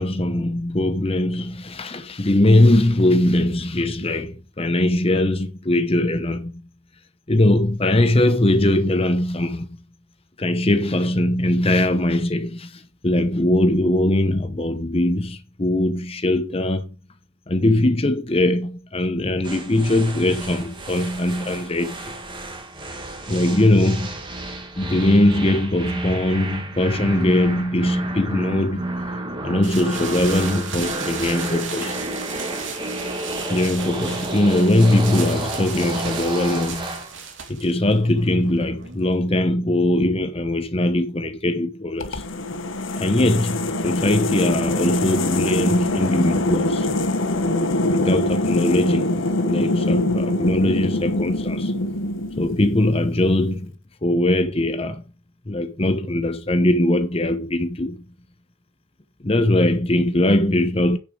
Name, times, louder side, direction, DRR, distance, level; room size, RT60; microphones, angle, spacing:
voice 1, 0.0-6.7 7.3-9.8 10.4-16.9 17.5-22.0 23.3-24.1 24.8-28.9 29.4-32.0 33.5-37.0 37.5-42.2 43.0-46.9 47.9-51.7 52.4-53.7 54.0-55.0 55.5-58.0 59.2-61.0, left 1 dB, 30° left, 0.9 m, -21 dB
sound 1, 19.4-37.1, right 1 dB, 25° right, 2.4 m, -31 dB
sound 2, 29.6-39.2, right 5 dB, 65° right, 3.2 m, -34 dB
sound 3, 42.0-53.1, left 2 dB, 70° left, 1.2 m, -23 dB
10.0 x 6.5 x 5.0 m
head